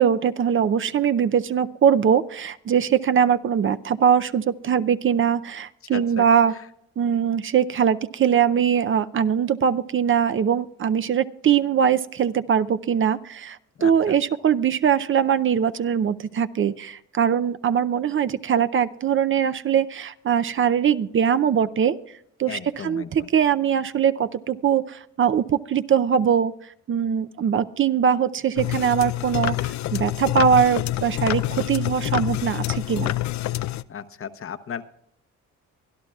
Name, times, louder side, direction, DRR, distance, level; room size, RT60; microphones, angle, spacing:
voice 1, 0.0-6.5 7.0-22.0 22.4-26.5 26.9-33.1, right 8 dB, 40° right, 12 dB, 0.6 m, -21 dB
voice 2, 5.9-6.3 13.8-14.2 22.5-23.3 33.9-34.8, left 8 dB, 45° left, 11 dB, 0.9 m, -35 dB
sound 1, 28.6-33.8, left 16 dB, 65° left, 0.5 m, -27 dB
24.0 x 12.0 x 2.4 m, 0.71 s
cardioid pair, 90°, 30 cm